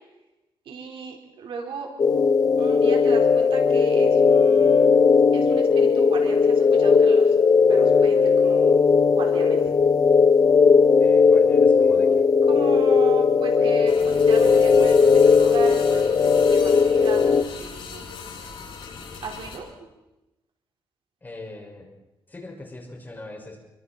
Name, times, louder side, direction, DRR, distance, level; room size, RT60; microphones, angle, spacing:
voice 1, 0.6-1.9 2.6-4.9 5.3-7.4 7.7-8.8 9.1-9.6 12.5-18.1 19.2-19.9, right 4 dB, 80° right, 1 dB, 4.7 m, -36 dB
sound 1, 2.0-17.4, left 5 dB, 45° left, 1.2 m, -17 dB
voice 2, 11.0-12.2 21.2-21.9 22.3-23.6, left 2 dB, 20° left, 0 dB, 5.9 m, -40 dB
sound 2, 13.9-19.6, left 5 dB, 80° left, 6.3 m, -39 dB
29.5 x 23.5 x 4.4 m, 1.0 s
wide cardioid pair, 130°, 9 cm